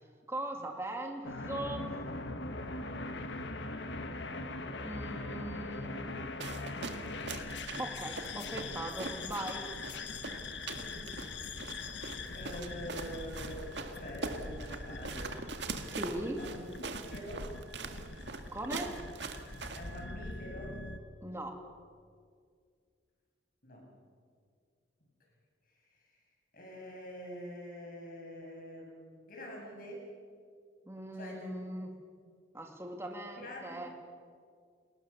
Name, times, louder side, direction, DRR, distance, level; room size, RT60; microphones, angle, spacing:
voice 1, 0.3-2.0 4.8-6.2 7.8-9.7 15.9-16.4 18.5-19.0 21.2-21.6 30.9-31.9 32.5-33.9, right 1 dB, 15° right, 3 dB, 2.3 m, -40 dB
sound 1, 1.2-21.0, left 2 dB, 70° left, 1.7 m, -42 dB
sound 2, 6.4-20.0, right 3 dB, 65° right, 1.9 m, -43 dB
voice 2, 10.8-11.1 11.7-11.8 12.3-15.4 16.4-16.6 17.1-17.5 19.7-20.8 23.6-23.9 25.9-26.0 26.5-30.1 31.1-31.5 33.4-33.8, equal, 45° left, 0 dB, 7.3 m, -45 dB
29.5 x 19.5 x 7.1 m, 2.1 s
head